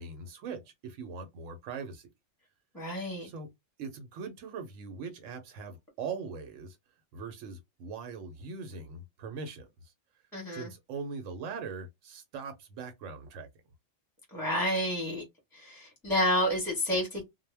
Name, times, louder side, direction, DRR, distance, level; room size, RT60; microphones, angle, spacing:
voice 1, 0.0-2.1 3.2-3.5 3.8-6.8 7.1-9.9 10.5-13.5, right 5 dB, 85° right, 1.0 m, -41 dB
voice 2, 2.7-3.3 10.3-10.7 14.3-15.2 15.5-17.2, equal, ahead, 0.9 m, -30 dB
2.2 x 2.1 x 3.2 m
omnidirectional pair, 1.3 m